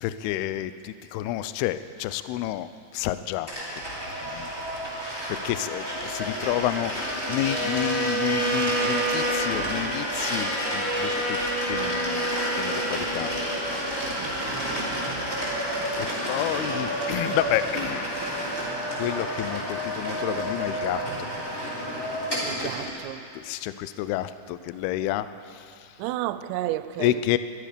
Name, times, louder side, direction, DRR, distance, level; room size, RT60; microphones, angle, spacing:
voice 1, 0.0-3.8 4.2-4.5 5.3-11.4 11.6-13.3 14.8-15.1 16.3-18.1 19.0-21.6 22.6-22.8 23.3-25.9 27.0-27.4, left 13 dB, 85° left, 2.2 m, -30 dB
sound 1, 3.5-23.0, equal, 20° left, 3.1 m, -30 dB
Bowed string instrument, 7.4-13.6, right 2 dB, 35° left, 3.8 m, -29 dB
voice 2, 14.2-15.3 22.4-23.3 26.0-27.4, right 14 dB, 90° right, 2.8 m, -33 dB
22.5 x 12.0 x 5.1 m
omnidirectional pair, 5.1 m